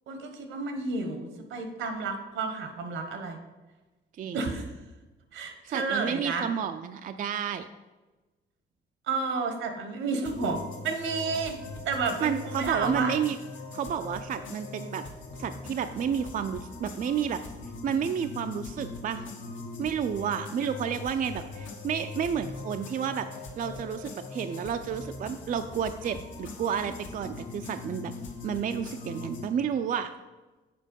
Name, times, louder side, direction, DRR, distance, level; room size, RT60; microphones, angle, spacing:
voice 1, 0.1-3.4 4.3-4.7 5.3-6.5 9.1-11.6 11.8-13.1, right 4 dB, 85° right, 6 dB, 1.1 m, -31 dB
voice 2, 4.2-4.5 5.6-7.7 12.2-13.4 13.7-15.1 15.4-17.4 17.8-19.3 19.8-23.3 23.6-28.1 28.4-30.1, right 8 dB, 45° right, 8 dB, 0.4 m, -31 dB
sound 1, 10.3-29.5, left 3 dB, 75° left, 1.2 m, -41 dB
7.5 x 4.4 x 5.3 m, 1.2 s
cardioid pair, 90°, 20 cm